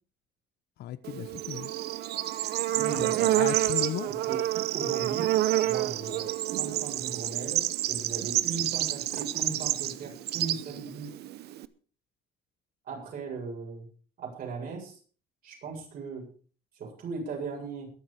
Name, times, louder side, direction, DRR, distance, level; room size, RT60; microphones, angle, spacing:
voice 1, 0.8-1.7 2.9-4.1, left 12 dB, 70° left, 1.2 m, -36 dB
Bird / Insect, 1.0-11.6, right 14 dB, 75° right, 0.9 m, -29 dB
voice 2, 2.7-3.4 4.1-4.4 4.7-5.3 5.6-11.1 12.8-13.9 14.2-15.0 15.4-16.3 16.8-17.9, right 4 dB, 60° right, 7.8 m, -38 dB
22.0 x 7.4 x 5.1 m
cardioid pair, 110°, 17 cm